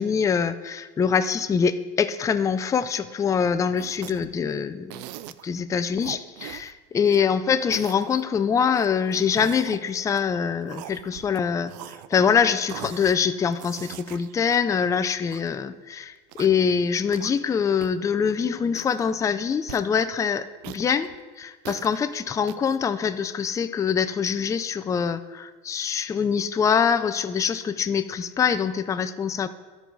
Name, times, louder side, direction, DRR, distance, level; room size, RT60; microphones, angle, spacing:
voice 1, 0.0-5.0 5.4-11.7 12.1-21.1 21.4-29.5, left 6 dB, 15° left, 11 dB, 0.3 m, -24 dB
sound 1, 3.8-4.4 4.9-5.5 6.0-7.2 7.6-8.2 8.7-10.3 10.6-11.4 11.7-12.4 12.7-13.2 13.5-15.5 16.2-16.7 17.1-17.6 17.8-17.9 18.2-18.4 18.7-19.2 19.7-20.1 20.6-22.0 22.5-22.8, right 14 dB, 85° right, 0.4 m, -41 dB
13.0 x 4.6 x 4.0 m, 1.3 s
supercardioid pair, 115°, 21 cm